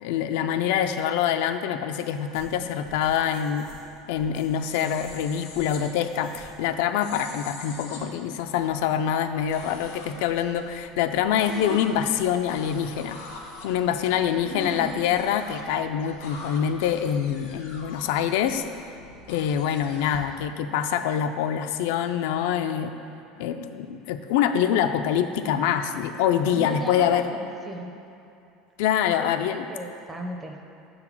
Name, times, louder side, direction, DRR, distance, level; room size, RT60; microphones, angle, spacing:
voice 1, 0.0-3.7 4.1-13.2 13.6-18.6 19.3-22.9 23.4-27.3 28.8-29.7, left 9 dB, 70° left, 8 dB, 0.3 m, -25 dB
sound 1, 2.0-6.8, right 3 dB, 80° right, 1.1 m, -49 dB
sound 2, 4.0-20.2, left 3 dB, 90° left, 1.1 m, -45 dB
voice 2, 11.5-11.8 14.4-15.0 26.5-27.9 29.2-29.3 29.5-30.6, right 1 dB, 10° right, 2 dB, 0.5 m, -36 dB
6.2 x 3.9 x 5.9 m, 2.6 s
cardioid pair, 160°, 0 cm